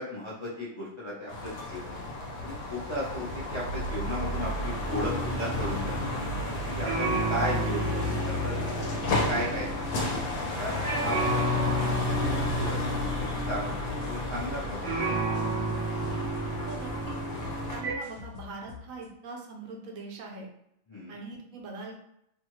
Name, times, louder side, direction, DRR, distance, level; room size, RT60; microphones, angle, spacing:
voice 1, 0.0-1.9 2.4-6.0 6.7-8.5 9.3-9.7 10.6-10.7 11.0-14.9 20.9-21.2, equal, 30° left, -8 dB, 0.5 m, -35 dB
sound 1, 1.3-17.8, left 1 dB, 85° left, 1.2 m, -32 dB
sound 2, 4.9-10.5 10.8-17.9, right 1 dB, 60° right, 0.6 m, -32 dB
sound 3, 8.0-19.1, left 7 dB, 65° left, 1.0 m, -47 dB
voice 2, 16.7-17.2 17.7-20.5 21.1-22.0, right 3 dB, 80° right, 1 dB, 1.0 m, -42 dB
2.7 x 2.4 x 3.0 m, 0.76 s
omnidirectional pair, 1.4 m